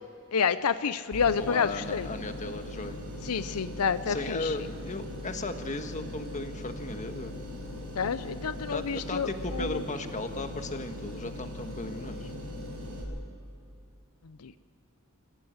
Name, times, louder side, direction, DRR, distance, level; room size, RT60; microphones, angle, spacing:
voice 1, 0.3-2.1 3.2-4.5 7.9-9.8 14.4-14.5, left 6 dB, 90° left, 13 dB, 0.6 m, -29 dB
sound 1, 1.1-13.0, left 1 dB, 80° right, 6.2 m, -40 dB
voice 2, 1.4-3.0 4.1-7.4 8.7-12.3, left 2 dB, 35° left, 7 dB, 1.5 m, -36 dB
26.0 x 15.5 x 8.0 m, 2.6 s
head